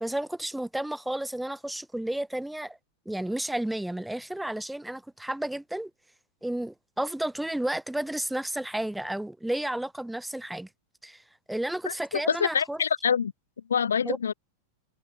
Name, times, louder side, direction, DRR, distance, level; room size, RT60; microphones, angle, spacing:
voice 1, 0.0-2.8 3.0-5.9 6.4-10.7 11.0-11.2 11.5-12.8 14.0-14.2, right 1 dB, 5° right, 1.2 m, -32 dB
voice 2, 11.9-13.3 13.7-14.3, left 7 dB, 70° left, 1.2 m, -26 dB
figure-of-eight pair, 90°, 0 cm